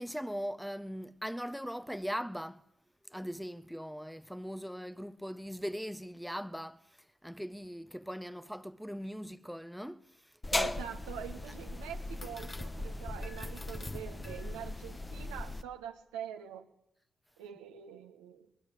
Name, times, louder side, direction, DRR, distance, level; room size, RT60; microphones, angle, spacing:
voice 1, 0.0-2.6 3.0-10.8, equal, ahead, 1.3 m, -40 dB
sound 1, 10.4-15.6, left 2 dB, 25° left, 1.5 m, -38 dB
voice 2, 10.5-16.7 17.4-18.5, right 10 dB, 85° right, 1.5 m, -44 dB
23.0 x 21.0 x 8.7 m
hypercardioid pair, 40°, 0 cm